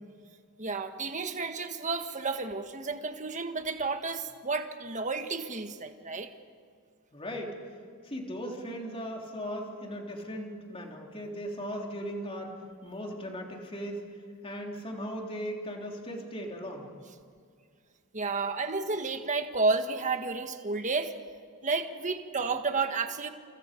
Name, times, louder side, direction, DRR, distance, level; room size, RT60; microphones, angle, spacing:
voice 1, 0.6-6.3 18.1-21.1 21.6-23.3, right 4 dB, 35° right, 6 dB, 1.6 m, -31 dB
voice 2, 7.1-7.6 8.0-12.5 12.8-14.0 14.4-16.9, equal, 25° left, 0 dB, 3.5 m, -38 dB
29.5 x 28.5 x 5.3 m, 2.1 s
head